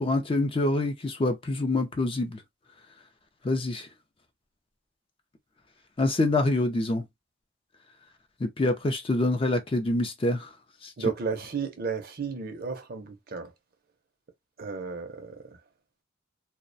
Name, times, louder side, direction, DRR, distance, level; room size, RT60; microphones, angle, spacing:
voice 1, 0.0-2.4 3.4-3.9 6.0-7.0 8.4-10.5 10.8-10.9, left 2 dB, 25° left, 0.4 m, -26 dB
voice 2, 11.0-13.5 14.6-15.3, right 5 dB, 45° right, 0.5 m, -33 dB
2.4 x 2.1 x 2.5 m
head